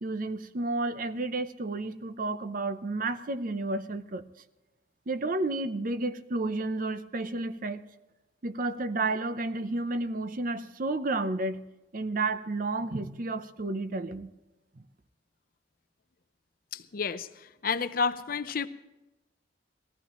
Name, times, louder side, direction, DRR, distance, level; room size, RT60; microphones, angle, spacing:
voice 1, 0.0-4.3 5.1-7.8 8.4-11.7 11.9-14.3 14.8-14.9, right 2 dB, 50° right, 12 dB, 0.6 m, -31 dB
voice 2, 16.7-17.3 17.6-18.7, left 5 dB, 55° left, 12 dB, 0.6 m, -30 dB
19.5 x 15.0 x 3.0 m, 1.0 s
head